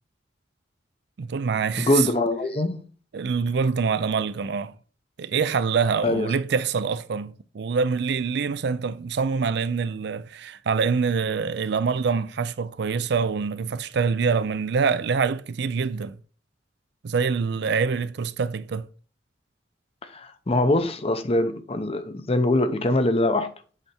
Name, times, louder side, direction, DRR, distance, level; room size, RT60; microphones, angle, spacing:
voice 1, 1.2-2.1 3.1-4.7 5.2-16.2 17.0-18.9, right 5 dB, 65° right, 0.4 m, -25 dB
voice 2, 1.8-2.8 6.0-6.3 20.1-23.5, left 1 dB, 35° left, 0.7 m, -23 dB
8.1 x 3.5 x 4.3 m
head